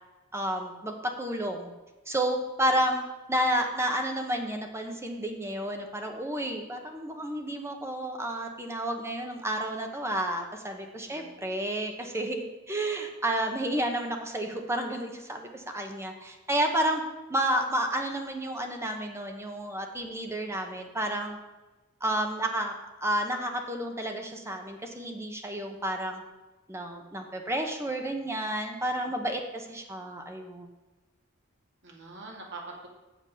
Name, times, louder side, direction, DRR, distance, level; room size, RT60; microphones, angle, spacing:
voice 1, 0.3-1.7 2.1-3.0 3.3-17.0 17.3-21.4 22.0-22.7 23.0-26.2 26.7-30.7, right 1 dB, 15° right, 3 dB, 1.0 m, -31 dB
voice 2, 11.0-11.3 28.8-29.1 31.8-32.9, right 3 dB, 55° right, -1 dB, 2.4 m, -45 dB
7.7 x 7.5 x 6.4 m, 1.1 s
head